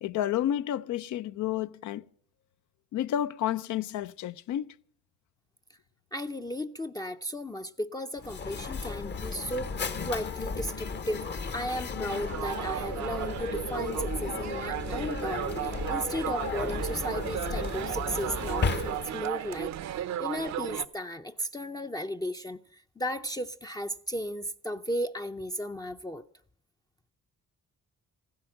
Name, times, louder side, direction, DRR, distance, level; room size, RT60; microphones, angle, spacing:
voice 1, 0.0-2.0 2.9-4.7, left 11 dB, 75° left, 0.6 m, -30 dB
voice 2, 6.1-26.2, equal, 15° left, 0.5 m, -35 dB
Mechanisms, 8.2-19.3, left 5 dB, 35° left, 0.8 m, -35 dB
sound 1, 12.1-20.8, right 12 dB, 65° right, 0.7 m, -35 dB
15.0 x 10.5 x 7.7 m
cardioid pair, 90°, 30 cm